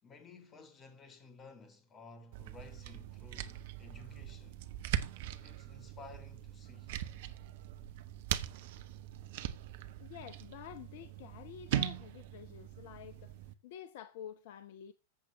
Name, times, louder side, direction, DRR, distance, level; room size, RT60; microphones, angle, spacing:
voice 1, 0.0-4.6 5.4-6.9, left 3 dB, 25° left, 3.9 m, -55 dB
sound 1, 2.3-13.5, right 12 dB, 50° right, 1.2 m, -41 dB
voice 2, 10.0-13.3 13.6-14.9, left 10 dB, 50° left, 1.0 m, -49 dB
14.5 x 8.5 x 4.0 m
figure-of-eight pair, 90°, 0 cm